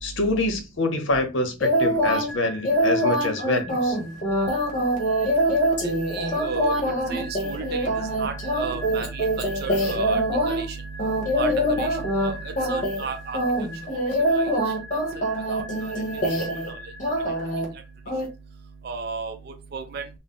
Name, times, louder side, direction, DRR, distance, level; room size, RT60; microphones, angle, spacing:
voice 1, 0.0-4.0, left 2 dB, 65° left, 0.8 m, -26 dB
sound 1, 1.6-2.3 2.6-10.6 11.0-12.3 12.6-13.0 13.3-16.7 17.0-17.6 18.1-18.2, equal, 40° left, 1.1 m, -24 dB
sound 2, 2.3-17.9, right 1 dB, 10° right, 1.2 m, -42 dB
voice 2, 5.8-6.8 7.1-13.4 14.4-14.5 15.5-15.9 16.7-16.8 18.8-19.4 19.7-20.0, right 5 dB, 50° right, 0.4 m, -33 dB
3.8 x 2.1 x 3.6 m
head